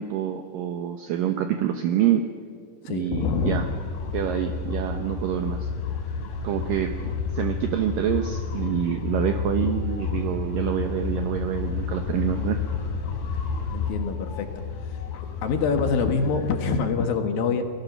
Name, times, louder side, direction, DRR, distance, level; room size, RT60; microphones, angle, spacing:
voice 1, 0.0-2.2 2.9-3.7 4.1-5.7 6.4-6.9 7.3-12.6, right 10 dB, 70° right, 6 dB, 2.3 m, -26 dB
voice 2, 2.8-3.8 7.0-7.2 13.7-17.6, left 5 dB, 65° left, 6 dB, 3.1 m, -26 dB
sound 1, 3.2-16.8, left 5 dB, 90° left, 4.9 m, -30 dB
30.0 x 20.5 x 6.0 m, 2.1 s
omnidirectional pair, 4.8 m